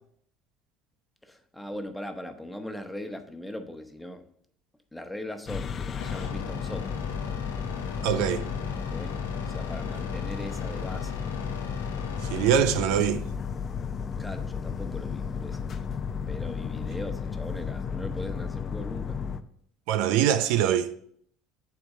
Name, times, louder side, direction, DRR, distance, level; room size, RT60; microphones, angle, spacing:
voice 1, 1.2-4.2 4.9-7.0 8.1-8.4 8.9-11.2 14.1-15.7 16.3-19.2 20.0-20.3, left 1 dB, 5° left, 1.1 m, -39 dB
sound 1, 5.5-19.4, left 6 dB, 40° left, 0.6 m, -33 dB
sound 2, 6.0-12.6, left 5 dB, 90° left, 0.9 m, -41 dB
voice 2, 8.0-8.4 12.2-13.2 19.9-20.9, right 9 dB, 70° right, 0.6 m, -23 dB
8.6 x 3.5 x 6.4 m
hypercardioid pair, 70°, 0 cm